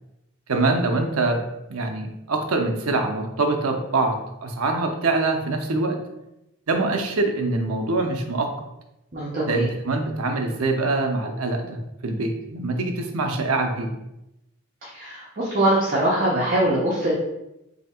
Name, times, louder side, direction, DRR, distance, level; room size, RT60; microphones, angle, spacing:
voice 1, 0.5-1.4 1.7-6.0 6.7-8.5 9.5-13.9, right 3 dB, 80° right, 4 dB, 0.6 m, -24 dB
voice 2, 9.1-9.7 14.8-17.1, right 1 dB, 40° right, -6 dB, 0.8 m, -22 dB
3.4 x 2.8 x 4.2 m, 0.90 s
head